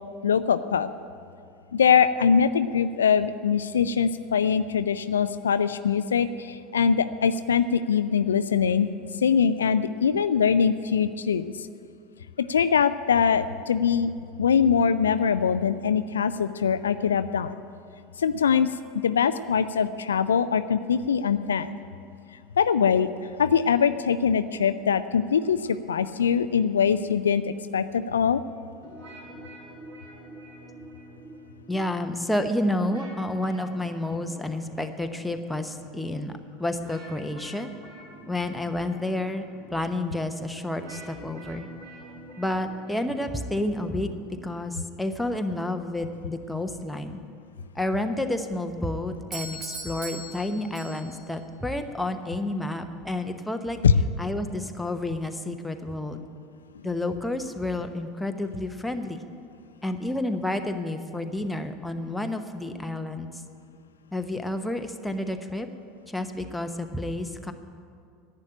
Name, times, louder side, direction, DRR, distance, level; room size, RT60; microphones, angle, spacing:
voice 1, 0.2-0.9 1.7-8.9 9.2-11.5 12.4-14.1 14.4-17.6 18.2-18.7 19.0-21.8 22.6-23.1 23.4-25.6 25.9-28.4 53.8-54.0, left 7 dB, 75° left, 12 dB, 0.4 m, -22 dB
sound 1, 28.8-44.8, right 1 dB, 65° right, 4.2 m, -47 dB
voice 2, 31.7-36.3 36.6-37.7 38.3-39.4 39.7-41.7 42.4-44.1 44.4-47.2 47.7-53.8 54.2-56.2 56.8-59.2 59.8-63.3 64.1-65.7 66.1-67.5, left 1 dB, 5° left, 6 dB, 1.0 m, -30 dB
Doorbell, 49.3-51.3, right 2 dB, 40° right, 2.0 m, -39 dB
11.0 x 8.9 x 10.0 m, 2.4 s
figure-of-eight pair, 75°, 0 cm